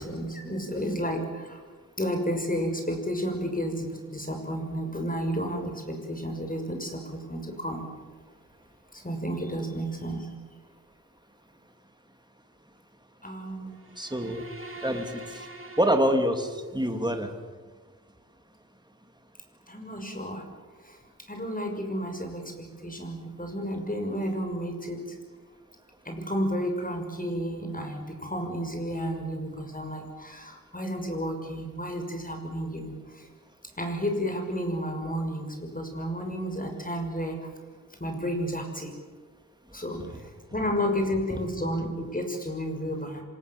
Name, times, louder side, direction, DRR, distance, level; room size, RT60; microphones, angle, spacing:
voice 1, 0.0-1.6 2.0-7.8 8.9-10.3 13.2-13.8 19.7-20.4 20.8-21.0 21.3-25.2 26.0-33.2 33.8-37.4 38.0-38.9 39.7-40.0 40.5-43.2, equal, 25° left, 4 dB, 6.3 m, -32 dB
sound 1, 13.8-16.8, right 1 dB, 40° right, 3.4 m, -44 dB
voice 2, 14.0-14.4 14.8-15.4 15.8-17.3 41.3-41.4, equal, 15° right, 5 dB, 3.1 m, -26 dB
28.0 x 26.0 x 7.4 m, 1.4 s
wide cardioid pair, 75°, 33 cm